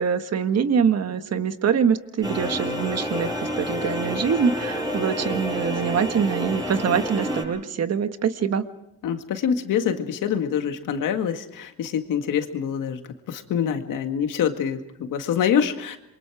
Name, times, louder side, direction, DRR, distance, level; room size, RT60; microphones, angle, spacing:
voice 1, 0.0-8.6, right 7 dB, 55° right, 9 dB, 1.5 m, -24 dB
sound 1, 2.2-7.4, equal, 10° right, 7.2 m, -29 dB
voice 2, 9.0-16.0, left 8 dB, 85° left, 6 dB, 2.0 m, -25 dB
27.5 x 24.0 x 4.9 m, 0.80 s
cardioid pair, 95°, 31 cm